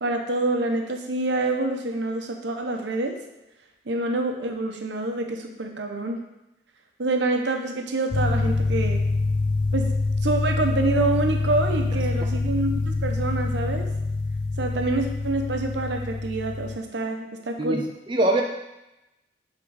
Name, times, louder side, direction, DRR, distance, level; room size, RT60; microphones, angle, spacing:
voice 1, 0.0-3.2 3.9-6.2 7.0-9.0 9.7-9.9 10.2-13.9 14.6-17.8, right 2 dB, 70° right, 3 dB, 0.8 m, -26 dB
sound 1, 8.1-16.8, left 3 dB, 70° left, 0.6 m, -25 dB
voice 2, 17.6-18.4, right 1 dB, 25° right, 1 dB, 0.5 m, -23 dB
7.0 x 3.8 x 4.8 m, 0.95 s
head